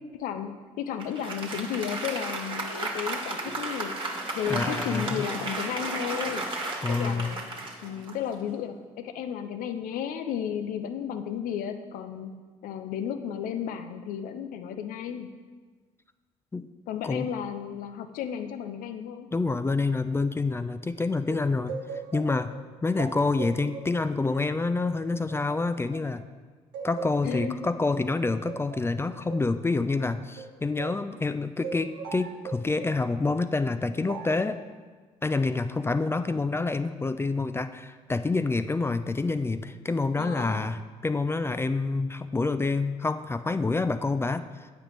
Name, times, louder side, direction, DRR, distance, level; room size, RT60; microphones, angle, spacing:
voice 1, 0.2-3.9 4.3-6.5 6.9-7.4 7.8-12.3 12.6-15.3 16.9-19.3 27.2-27.6 40.2-40.6, left 8 dB, 70° left, 9 dB, 0.5 m, -33 dB
Applause, 1.0-8.6, right 2 dB, 35° right, 1.3 m, -34 dB
voice 2, 4.5-5.3 6.8-7.3 16.5-16.7 17.0-17.3 19.3-21.8 22.1-22.5 22.8-26.2 26.8-34.6 35.2-44.4, left 3 dB, 15° left, 11 dB, 0.3 m, -27 dB
sound 1, 21.3-26.3 26.7-31.1 31.6-33.1 34.1-34.5, right 6 dB, 80° right, 0.6 m, -40 dB
8.5 x 5.1 x 3.1 m, 1.4 s
hypercardioid pair, 55°, 15 cm